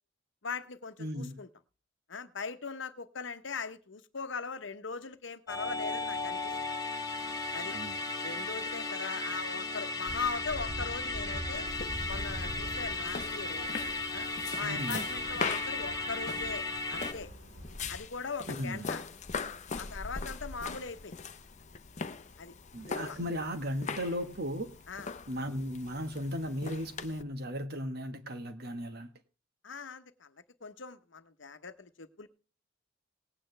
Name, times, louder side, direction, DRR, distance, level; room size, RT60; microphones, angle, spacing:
voice 1, 0.4-1.5 2.1-6.5 7.5-7.7 8.2-11.7 12.0-13.7 14.1-14.3 14.6-16.6 16.9-17.3 17.9-19.0 19.8-21.1 22.4-22.5 23.1-23.2 24.9-25.1 29.6-30.3 30.6-32.3, left 5 dB, 65° left, 1.0 m, -40 dB
voice 2, 1.0-1.4 7.7-8.0 14.6-15.1 18.5-18.9 22.7-24.8 25.3-29.1, equal, 55° right, 1.5 m, -36 dB
Musical instrument, 5.5-17.1, left 2 dB, 20° left, 1.5 m, -35 dB
sound 1, 10.1-18.0, equal, 90° right, 2.4 m, -44 dB
sound 2, 11.7-27.2, left 5 dB, 40° left, 0.8 m, -41 dB
19.0 x 8.8 x 3.3 m
head